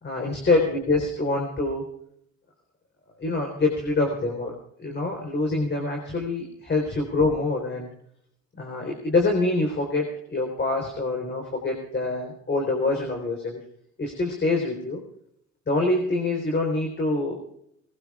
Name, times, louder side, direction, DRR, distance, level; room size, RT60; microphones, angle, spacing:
voice 1, 0.0-1.8 3.2-4.5 4.8-7.9 8.6-13.6 14.0-15.0 15.7-17.4, left 2 dB, 35° left, 1 dB, 4.0 m, -25 dB
21.5 x 21.5 x 2.4 m, 0.72 s
cardioid pair, 90°, 30 cm